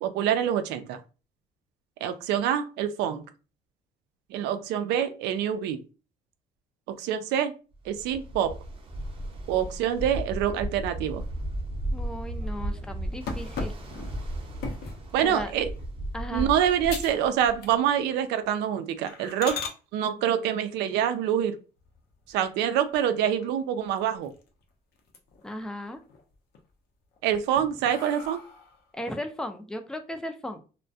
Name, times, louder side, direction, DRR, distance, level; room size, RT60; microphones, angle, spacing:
voice 1, 0.0-1.0 2.0-3.2 4.3-5.8 6.9-7.5 7.9-8.6 9.5-11.2 15.1-15.7 16.3-19.6 19.9-21.6 22.3-24.3 27.2-28.4, right 9 dB, 85° right, 9 dB, 0.4 m, -26 dB
Ocean, 7.8-17.7, right 1 dB, 30° right, 0.6 m, -35 dB
voice 2, 11.9-13.7 15.2-15.5 16.1-16.5 25.4-26.0 28.9-30.6, left 1 dB, 5° left, 6 dB, 0.4 m, -36 dB
sound 1, 13.3-15.1 15.6-15.9 16.4-16.5 16.9-17.2 17.5-18.1 18.4-18.6 19.1-19.8 21.8-22.5 22.9-23.0 23.4-23.5 23.8-24.6 25.0-25.6 26.0-26.6 27.1-28.8, left 4 dB, 70° left, 0.6 m, -38 dB
2.2 x 2.1 x 2.6 m, 0.34 s
cardioid pair, 110°, 17 cm